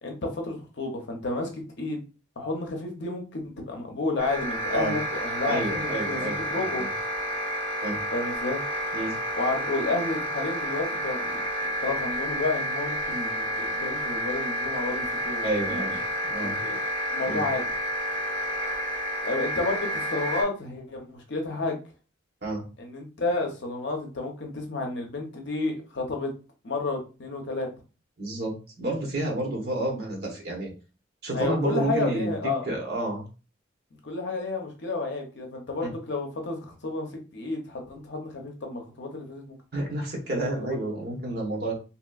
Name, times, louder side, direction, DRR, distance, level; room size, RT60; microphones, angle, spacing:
voice 1, 0.0-2.0 2.4-6.9 8.1-8.6 9.4-11.4 11.8-15.8 16.4-16.8 17.1-17.6 19.2-21.8 22.8-26.3 26.6-27.7 31.3-32.7 34.0-37.1 37.3-39.6 40.6-40.8, left 3 dB, 60° left, 2 dB, 0.7 m, -31 dB
sound 1, 4.2-20.4, equal, 10° left, 1.7 m, -30 dB
voice 2, 5.4-6.9 7.8-8.0 8.9-9.2 15.4-16.0 16.2-16.6 17.2-17.4 22.4-22.6 28.2-30.7 31.2-33.2 39.7-41.7, right 1 dB, 55° right, -1 dB, 1.1 m, -30 dB
2.9 x 2.9 x 2.3 m, 0.34 s
head